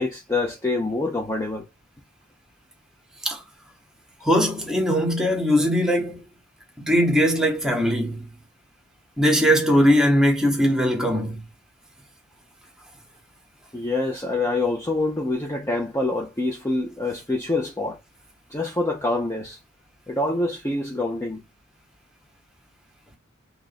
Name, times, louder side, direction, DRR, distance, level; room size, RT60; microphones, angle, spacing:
voice 1, 0.0-1.7 13.7-18.0 18.5-19.6 20.1-21.4, left 2 dB, 15° left, 0.5 m, -26 dB
voice 2, 4.2-6.2 6.8-8.3 9.2-11.4, equal, 5° right, 0.9 m, -20 dB
2.9 x 2.4 x 4.0 m
head